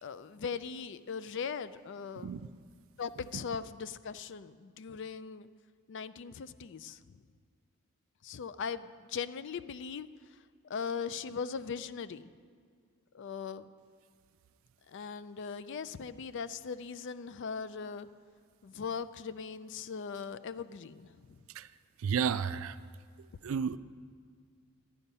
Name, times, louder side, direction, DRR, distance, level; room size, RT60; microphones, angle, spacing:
voice 1, 0.0-2.3 3.0-5.5 5.9-7.2 8.2-10.1 10.7-12.3 13.1-13.7 14.9-18.1 18.6-21.4, left 6 dB, 60° left, 14 dB, 0.4 m, -39 dB
voice 2, 22.0-22.8 23.4-23.8, right 7 dB, 70° right, 15 dB, 0.4 m, -31 dB
12.0 x 9.2 x 5.5 m, 2.1 s
head